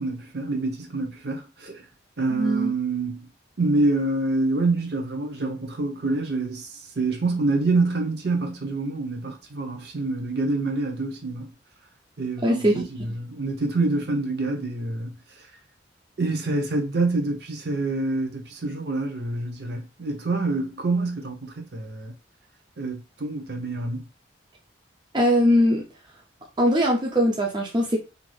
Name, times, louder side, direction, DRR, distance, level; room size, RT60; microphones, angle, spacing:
voice 1, 0.0-1.9 2.2-3.3 3.6-11.5 12.2-15.5 16.2-22.1 22.8-24.0, right 3 dB, 55° right, 0.7 m, -26 dB
voice 2, 2.4-2.7 12.4-12.8 25.1-25.9 26.6-28.0, equal, 25° right, 0.4 m, -21 dB
2.6 x 2.3 x 3.1 m
head